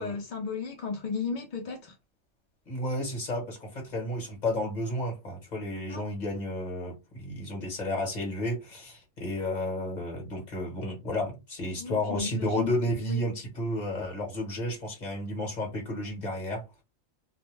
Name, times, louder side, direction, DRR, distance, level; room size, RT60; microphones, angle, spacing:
voice 1, 0.0-1.9 5.9-6.0 11.8-12.7 13.0-13.2, left 5 dB, 60° left, 0.5 m, -34 dB
voice 2, 2.7-16.6, left 1 dB, 35° left, 1.1 m, -32 dB
2.5 x 2.1 x 3.1 m
omnidirectional pair, 1.4 m